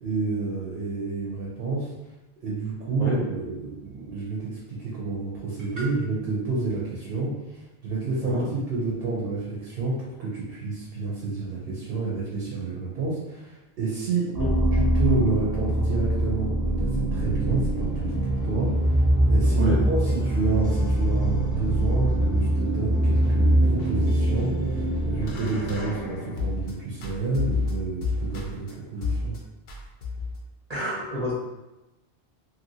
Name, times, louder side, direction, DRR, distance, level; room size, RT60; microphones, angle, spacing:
voice 1, 0.0-1.9 2.4-14.3 14.7-29.4, right 3 dB, 65° right, -5 dB, 1.0 m, -29 dB
sound 1, 14.3-26.2, right 1 dB, 20° right, 1.2 m, -23 dB
sound 2, 17.0-26.7 27.0-28.7 29.0-29.4 29.7-30.4, left 3 dB, 70° left, 0.9 m, -35 dB
voice 2, 30.7-31.3, equal, 40° right, -8 dB, 0.8 m, -29 dB
2.9 x 2.8 x 2.7 m, 1.0 s
omnidirectional pair, 1.1 m